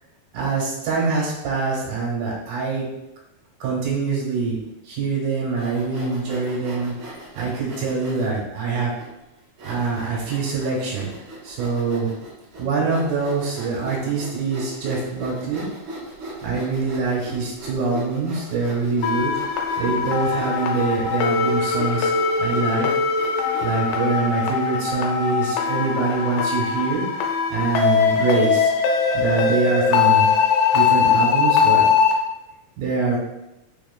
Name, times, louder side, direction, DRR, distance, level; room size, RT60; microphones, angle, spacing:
voice 1, 0.3-2.9 3.6-4.6 4.8-8.9 9.6-11.1 11.4-12.1 12.6-15.7 16.4-19.3 19.8-22.1 22.4-22.9 23.6-27.2 27.5-28.7 29.1-30.3 30.7-31.9 32.8-33.2, right 4 dB, 80° right, -3 dB, 3.0 m, -24 dB
Sawing, 5.5-8.4 9.0-9.1 9.6-23.9, right 1 dB, 60° right, 2.8 m, -38 dB
sound 1, 19.0-32.1, left 6 dB, 85° left, 2.3 m, -21 dB
6.0 x 3.1 x 2.3 m, 0.92 s
omnidirectional pair, 4.2 m